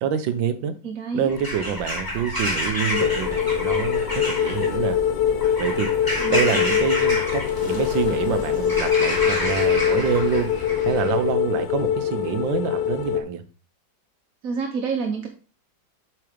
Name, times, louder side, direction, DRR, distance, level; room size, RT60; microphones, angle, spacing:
voice 1, 0.0-0.7 1.1-5.0 5.6-5.9 6.3-10.5 10.8-13.4, right 7 dB, 80° right, 11 dB, 1.6 m, -26 dB
voice 2, 0.8-1.3 6.2-6.6 14.4-15.3, right 5 dB, 50° right, 3 dB, 1.3 m, -28 dB
Bird vocalization bird call bird song / Crow, 1.3-11.2, left 1 dB, 10° left, 2.6 m, -29 dB
sound 1, 2.9-13.2, left 9 dB, 75° left, 1.5 m, -23 dB
7.7 x 4.7 x 5.0 m, 0.36 s
omnidirectional pair, 2.1 m